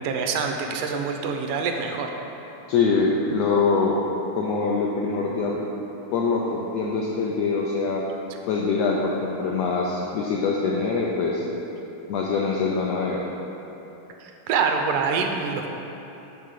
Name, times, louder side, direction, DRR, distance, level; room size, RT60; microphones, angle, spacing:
voice 1, 0.0-2.1 14.2-15.7, right 5 dB, 80° right, 4 dB, 2.0 m, -25 dB
voice 2, 2.7-4.0 4.4-5.7 6.1-8.1 8.5-11.4 12.1-13.2, left 4 dB, 85° left, -3 dB, 1.5 m, -24 dB
8.2 x 3.7 x 6.5 m, 3.0 s
omnidirectional pair, 3.7 m